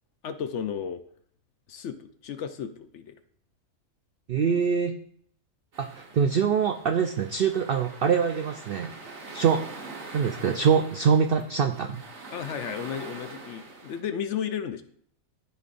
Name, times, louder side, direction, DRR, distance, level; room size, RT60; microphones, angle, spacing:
voice 1, 0.2-1.0 1.7-3.2 12.3-14.8, left 8 dB, 65° left, 10 dB, 0.8 m, -33 dB
voice 2, 4.3-5.0 5.8-8.9 9.3-9.6 10.1-12.0, right 6 dB, 75° right, 6 dB, 0.5 m, -24 dB
sound 1, 5.7-14.0, right 3 dB, 55° right, 1.5 m, -44 dB
13.5 x 5.2 x 2.5 m, 0.64 s
omnidirectional pair, 1.5 m